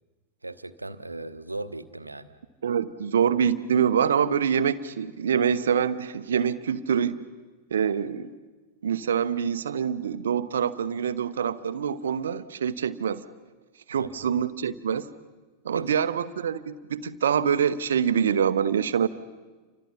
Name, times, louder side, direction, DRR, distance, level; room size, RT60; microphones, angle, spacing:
voice 1, 0.4-2.3 13.9-14.1 15.7-16.1, right 2 dB, 85° right, 11 dB, 1.2 m, -37 dB
voice 2, 2.6-7.2 7.7-8.3 8.8-13.2 13.9-15.1 15.6-19.1, right 7 dB, 65° right, 14 dB, 1.1 m, -25 dB
30.0 x 25.5 x 5.8 m, 1.3 s
figure-of-eight pair, 90°, 0 cm